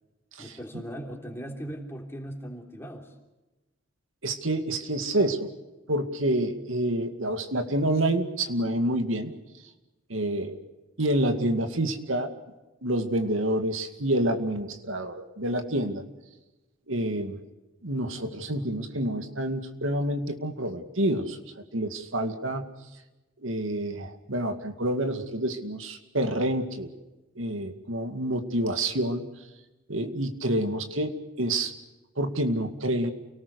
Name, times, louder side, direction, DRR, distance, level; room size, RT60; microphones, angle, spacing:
voice 1, 0.4-3.1, equal, 10° left, 1 dB, 3.4 m, -39 dB
voice 2, 4.2-5.5 5.9-9.3 10.1-10.6 11.0-12.3 12.8-16.0 16.9-17.3 17.8-21.4 21.7-22.7 23.4-26.9 27.4-29.3 29.9-31.7 32.2-33.1, right 1 dB, 85° right, 6 dB, 2.3 m, -28 dB
29.5 x 19.0 x 6.5 m, 1.1 s
head